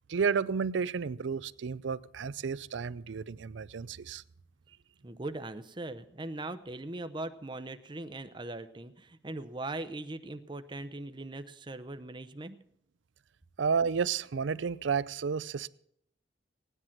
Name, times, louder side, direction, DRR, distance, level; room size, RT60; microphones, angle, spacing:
voice 1, 0.1-4.2 13.6-15.7, right 6 dB, 70° right, 0.5 m, -31 dB
voice 2, 5.0-12.6, right 2 dB, 25° right, 0.7 m, -40 dB
17.5 x 10.0 x 5.9 m
head